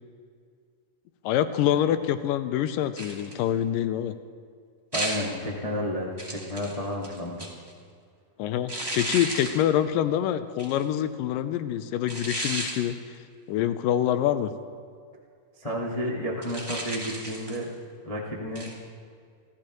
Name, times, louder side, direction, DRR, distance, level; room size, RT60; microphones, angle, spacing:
voice 1, 1.2-4.1 8.4-13.0 13.5-14.5, left 11 dB, 80° left, 11 dB, 2.2 m, -26 dB
sound 1, 3.0-3.4 4.9-5.3 6.2-7.7 8.7-9.6 10.6-10.8 12.1-12.8 16.4-17.7 18.5-18.8, right 1 dB, 10° right, 1.7 m, -33 dB
voice 2, 4.9-7.5 15.6-17.7 18.0-18.7, equal, 55° left, -4 dB, 0.4 m, -31 dB
28.0 x 13.5 x 3.1 m, 2.2 s
omnidirectional pair, 4.2 m